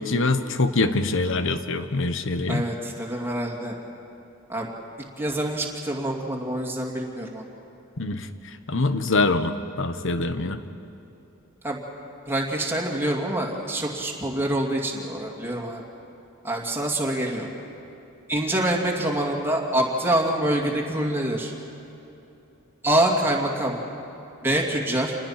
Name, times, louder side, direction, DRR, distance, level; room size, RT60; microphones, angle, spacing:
voice 1, 0.0-2.6 8.0-8.3 8.7-10.6, left 3 dB, 60° left, 10 dB, 1.1 m, -24 dB
voice 2, 2.5-3.8 4.5-4.7 5.2-7.4 11.6-11.8 12.3-15.8 16.4-17.5 18.3-21.5 22.8-23.8 24.4-25.2, right 1 dB, 10° right, -1 dB, 2.6 m, -25 dB
28.0 x 20.0 x 5.9 m, 2.9 s
head